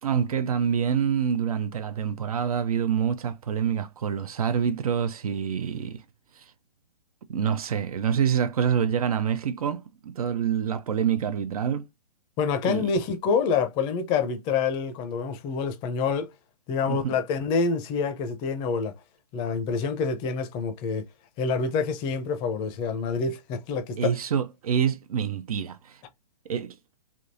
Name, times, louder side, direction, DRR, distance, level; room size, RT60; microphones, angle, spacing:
voice 1, 0.0-6.0 6.4-6.5 7.3-11.9 12.6-12.9 16.9-17.2 24.0-26.0 26.5-26.8, right 8 dB, 60° right, 0.5 m, -26 dB
voice 2, 12.4-16.3 16.7-18.9 19.3-21.0 21.4-24.1, left 5 dB, 25° left, 0.6 m, -27 dB
3.5 x 2.6 x 2.6 m
hypercardioid pair, 130°, 21 cm